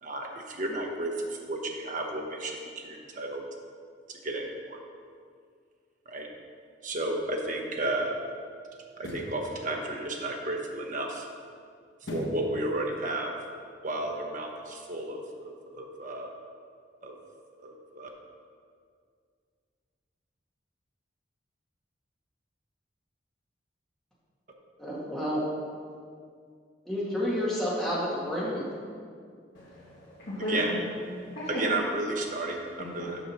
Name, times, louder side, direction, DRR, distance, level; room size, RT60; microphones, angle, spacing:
voice 1, 0.0-3.5 4.1-4.8 6.1-6.3 6.8-8.1 9.0-11.3 12.1-13.3 13.8-16.3 17.0-17.2 17.6-18.1 30.5-30.7 31.5-33.2, right 2 dB, 45° right, 1 dB, 0.9 m, -33 dB
sound 1, 7.2-7.3 8.9-9.4 12.0-12.5 12.9-13.0, left 1 dB, 80° left, 1.2 m, -37 dB
voice 2, 24.8-25.4 26.9-28.6, equal, 5° left, -8 dB, 1.9 m, -30 dB
voice 3, 29.5-30.8 31.2-31.6 32.8-33.1, left 1 dB, 65° left, -11 dB, 1.8 m, -36 dB
7.1 x 5.4 x 5.8 m, 2.1 s
head